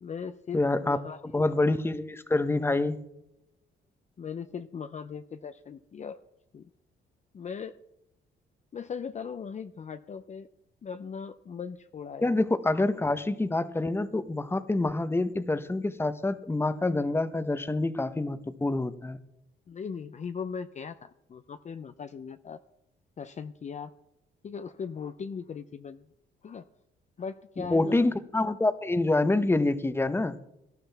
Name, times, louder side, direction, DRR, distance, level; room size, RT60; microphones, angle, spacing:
voice 1, 0.0-1.2 4.2-6.2 6.5-6.7 7.3-7.8 8.7-10.5 10.8-12.4 19.7-22.6 23.2-23.9 24.4-26.0 26.4-26.6 27.2-28.1, left 6 dB, 35° left, 10 dB, 0.5 m, -39 dB
voice 2, 0.5-1.0 1.3-3.0 12.2-19.2 27.6-30.4, left 2 dB, 10° left, 12 dB, 0.8 m, -26 dB
17.5 x 12.5 x 3.4 m, 0.85 s
cardioid pair, 90°, 20 cm